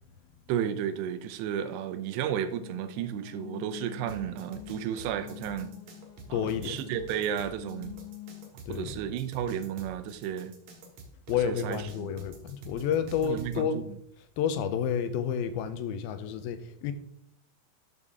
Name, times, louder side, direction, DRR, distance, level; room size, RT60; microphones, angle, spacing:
voice 1, 0.5-5.7 6.3-8.0 8.7-10.6 11.4-12.1 13.2-13.8, right 9 dB, 90° right, 2.9 m, -33 dB
sound 1, 2.5-8.5, left 15 dB, 60° left, 2.3 m, -46 dB
sound 2, 4.1-13.6, right 3 dB, 60° right, 2.8 m, -47 dB
voice 2, 6.3-6.8 8.7-8.9 11.3-13.9 14.4-16.9, left 8 dB, 75° left, 2.4 m, -30 dB
12.5 x 6.7 x 3.5 m
omnidirectional pair, 4.7 m